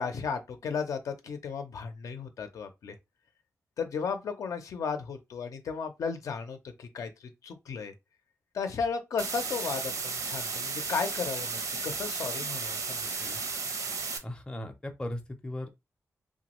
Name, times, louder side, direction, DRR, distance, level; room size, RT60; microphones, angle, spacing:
voice 1, 0.0-3.0 3.8-7.9 8.5-13.4, left 5 dB, 75° left, 0.5 m, -35 dB
sound 1, 9.2-14.2, right 4 dB, 75° right, 0.7 m, -34 dB
voice 2, 14.2-15.7, left 1 dB, 15° left, 0.5 m, -37 dB
2.9 x 2.2 x 2.9 m
wide cardioid pair, 130°, 6 cm